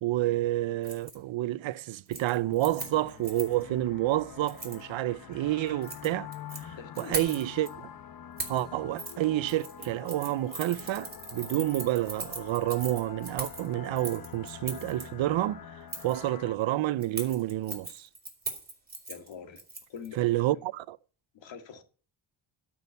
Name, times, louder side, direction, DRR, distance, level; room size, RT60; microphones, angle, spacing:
voice 1, 0.0-7.9 8.5-15.6 16.0-18.1 20.2-21.0, right 15 dB, 70° right, 0.6 m, -29 dB
Keys jangling, 0.8-1.1 1.5-1.8 2.1-3.6 4.5-4.8 5.7-6.6 6.9-7.7 8.4-8.6 9.0-9.2 9.5-15.0 15.9-16.2 17.0-20.1 20.4-20.5, right 3 dB, 20° right, 4.2 m, -39 dB
sound 1, 2.3-16.6, left 9 dB, 45° left, 1.0 m, -46 dB
voice 2, 6.8-7.4 15.3-15.4 17.6-17.8 19.1-19.6 19.9-20.2 20.5-20.7 21.3-21.8, left 6 dB, 70° left, 2.1 m, -45 dB
12.0 x 6.4 x 8.2 m
cardioid pair, 120°, 47 cm